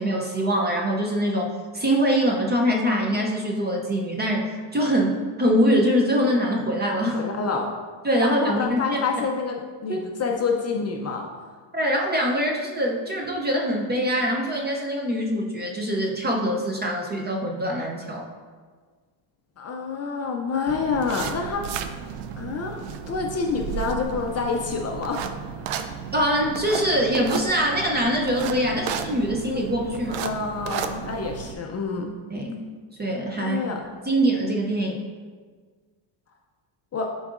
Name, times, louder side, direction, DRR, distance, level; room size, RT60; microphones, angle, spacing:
voice 1, 0.0-7.2 8.0-9.0 9.9-10.0 11.7-18.3 26.1-30.2 32.3-32.6 33.0-33.6 34.1-35.0, equal, 20° right, 0 dB, 0.5 m, -23 dB
voice 2, 7.1-7.7 8.2-11.3 19.6-21.7 22.4-22.8 23.1-25.3 30.2-32.1 33.4-33.8 36.9-37.1, left 4 dB, 35° left, 1 dB, 0.4 m, -27 dB
sound 1, 20.7-31.5, right 7 dB, 80° right, 0.6 m, -33 dB
10.5 x 3.9 x 2.4 m, 1.5 s
cardioid pair, 150°, 50 cm